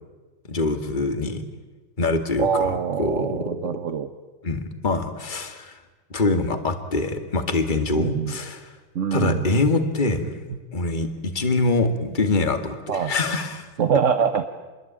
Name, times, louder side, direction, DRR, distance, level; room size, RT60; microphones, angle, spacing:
voice 1, 0.5-1.4 2.0-3.6 4.4-5.8 6.1-8.7 9.1-10.4 10.7-13.7, left 3 dB, 25° left, 8 dB, 2.3 m, -24 dB
voice 2, 2.4-4.1 8.0-8.3 8.9-9.5 12.9-13.1 13.8-14.4, right 7 dB, 45° right, 8 dB, 1.2 m, -24 dB
28.0 x 22.0 x 8.9 m, 1.2 s
omnidirectional pair, 2.2 m